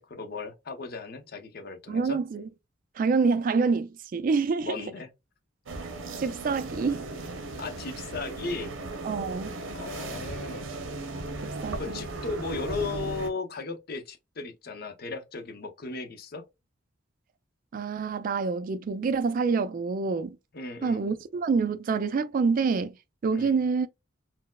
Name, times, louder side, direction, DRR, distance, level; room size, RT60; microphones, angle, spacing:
voice 1, 0.0-2.2 4.6-5.1 7.6-8.7 9.7-10.8 11.8-16.4 20.5-21.0 23.3-23.6, left 4 dB, 50° left, 0.6 m, -36 dB
voice 2, 1.9-2.5 3.0-4.7 6.2-7.1 9.0-9.6 11.4-12.0 17.7-20.4 20.8-22.9 23.2-23.9, right 4 dB, 45° right, 0.3 m, -27 dB
sound 1, 5.7-13.3, right 2 dB, 85° right, 0.7 m, -36 dB
4.3 x 2.0 x 2.2 m
head